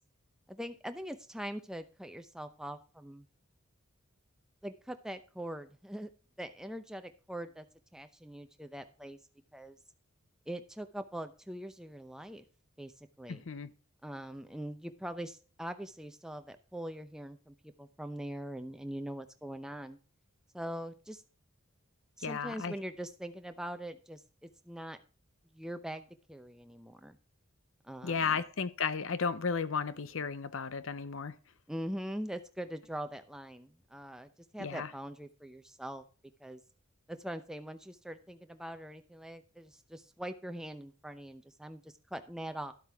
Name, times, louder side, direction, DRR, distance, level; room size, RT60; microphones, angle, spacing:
voice 1, 0.5-3.3 4.6-6.1 6.4-7.7 7.9-9.2 9.5-9.8 10.5-12.4 12.8-13.4 14.0-20.0 20.5-21.2 22.2-25.0 25.5-27.2 27.8-28.4 31.7-36.0 36.4-36.6 37.1-42.7, equal, 5° right, 0.6 m, -42 dB
voice 2, 13.3-13.7 22.2-22.7 28.0-31.3 34.6-34.9, left 5 dB, 65° left, 0.6 m, -34 dB
12.0 x 7.9 x 3.5 m
head